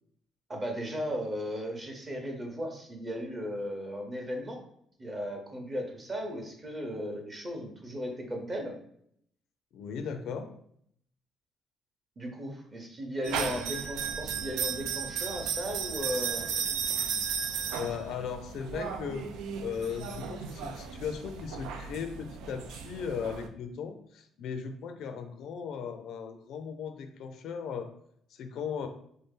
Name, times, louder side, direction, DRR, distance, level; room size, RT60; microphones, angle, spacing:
voice 1, 0.5-4.6 5.0-8.7 12.2-16.4, equal, 20° right, 2 dB, 0.8 m, -36 dB
voice 2, 9.7-10.5 17.7-19.3 19.6-27.9 28.3-28.9, left 6 dB, 65° left, 7 dB, 0.5 m, -37 dB
sound 1, 13.2-23.5, right 6 dB, 90° right, 0.4 m, -35 dB
3.5 x 2.7 x 3.6 m, 0.68 s
cardioid pair, 155°, 0 cm